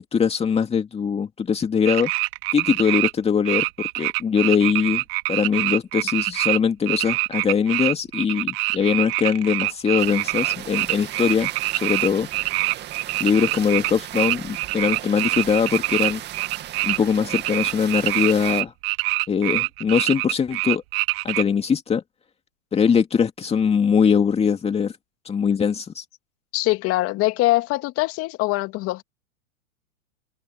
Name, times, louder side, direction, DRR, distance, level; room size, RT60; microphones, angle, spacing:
voice 1, 0.0-2.1 2.5-5.0 5.3-12.3 13.2-16.2 16.8-18.7 19.3-20.8 21.2-22.0 22.7-24.9 25.3-26.0, left 6 dB, 15° left, 2.4 m, -22 dB
sound 1, 1.8-3.1 3.4-6.6 6.9-17.0 17.3-21.4, right 25 dB, 45° right, 2.5 m, -25 dB
sound 2, 10.0-18.6, right 12 dB, 25° right, 2.2 m, -37 dB
voice 2, 26.5-29.0, left 19 dB, 35° left, 2.3 m, -23 dB
open air
hypercardioid pair, 120°, 41 cm